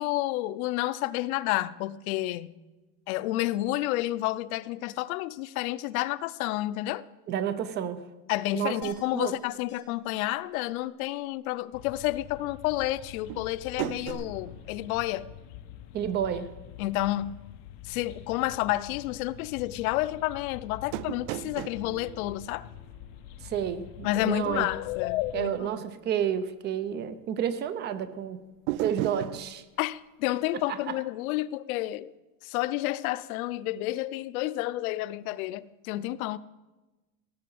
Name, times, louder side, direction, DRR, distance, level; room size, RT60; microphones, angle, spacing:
voice 1, 0.0-2.5 3.1-7.0 8.3-15.3 16.8-17.4 17.8-22.7 24.0-25.7 29.8-32.1 32.4-36.4, left 16 dB, 85° left, 0.7 m, -30 dB
voice 2, 7.3-8.0 8.5-9.3 15.9-16.5 23.4-24.7 25.3-28.4 28.8-29.6 30.7-30.8, right 9 dB, 25° right, 0.6 m, -30 dB
sound 1, 8.8-9.4 9.7-9.8 10.1-10.2 10.6-10.7 14.1-14.2, left 10 dB, 25° left, 1.1 m, -44 dB
sound 2, 11.7-25.5, left 15 dB, 50° left, 0.7 m, -41 dB
sound 3, 13.3-15.9 16.2-16.3 20.9-23.4 28.7-29.5, right 17 dB, 90° right, 0.5 m, -37 dB
17.0 x 8.4 x 7.8 m
cardioid pair, 175°, 41 cm